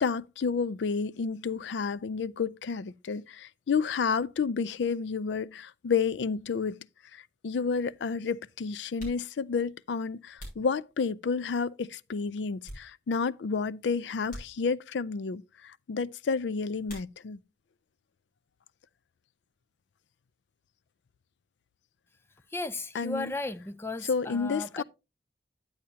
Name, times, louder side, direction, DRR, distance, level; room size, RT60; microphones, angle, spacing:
voice 1, 0.0-6.8 7.1-17.4 22.9-23.3 24.1-24.8, left 5 dB, 90° left, 0.4 m, -30 dB
sound 1, 8.9-11.5 12.0-13.4 13.6-13.8 14.2-15.1 16.8-17.6 17.9-18.6 18.8-21.0, equal, 50° left, 6.8 m, -49 dB
voice 2, 22.5-24.8, left 2 dB, 15° left, 0.5 m, -35 dB
10.0 x 8.7 x 2.8 m
head